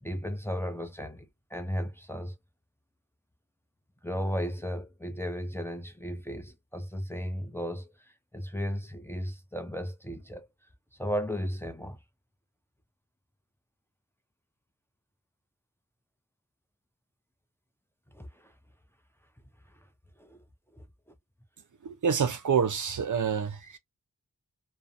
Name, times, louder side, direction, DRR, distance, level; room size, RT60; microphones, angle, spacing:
voice 1, 0.0-2.4 4.0-10.5 10.9-12.0 18.1-18.5 19.7-19.8 20.2-20.4 20.7-20.8, equal, 5° left, 0.6 m, -35 dB
voice 2, 21.8-23.8, right 6 dB, 55° right, 0.6 m, -27 dB
2.5 x 2.1 x 2.5 m
cardioid pair, 45°, 36 cm